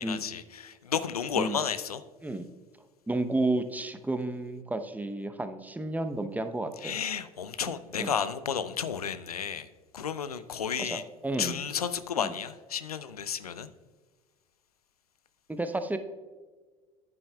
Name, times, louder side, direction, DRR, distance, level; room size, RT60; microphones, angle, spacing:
voice 1, 0.0-2.0 6.8-11.0 11.4-13.7, left 7 dB, 90° left, 0.4 m, -32 dB
voice 2, 3.1-7.0 8.0-8.1 10.8-11.0 11.2-11.6 12.2-12.3 15.5-16.0, right 2 dB, 10° right, 0.7 m, -31 dB
9.6 x 9.5 x 2.3 m
figure-of-eight pair, 65°, 19 cm